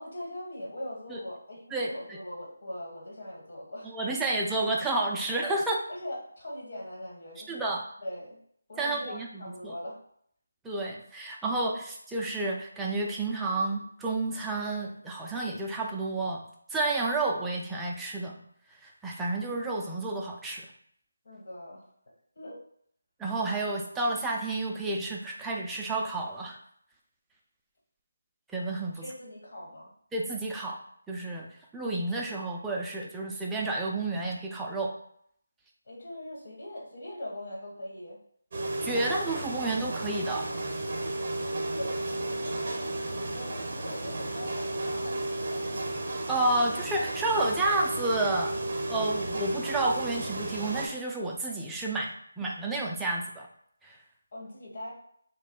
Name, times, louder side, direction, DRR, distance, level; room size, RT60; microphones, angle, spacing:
voice 1, 0.0-4.2 5.9-7.6 8.0-8.4 8.7-10.0 21.2-21.9 22.3-22.6 28.9-29.9 35.8-38.2 41.4-45.6 54.3-54.9, left 1 dB, 55° left, -4 dB, 1.2 m, -41 dB
voice 2, 1.7-2.2 3.8-5.8 7.5-7.8 8.8-9.7 10.6-16.4 16.7-18.4 18.7-20.7 23.2-26.6 28.5-29.0 30.1-30.8 31.1-34.9 38.8-40.5 46.3-48.6 48.9-53.5 53.8-54.0, right 2 dB, 5° right, -2 dB, 0.3 m, -30 dB
sound 1, 38.5-50.9, right 2 dB, 40° right, 0.7 m, -33 dB
2.6 x 2.2 x 3.8 m, 0.67 s
figure-of-eight pair, 165°, 0 cm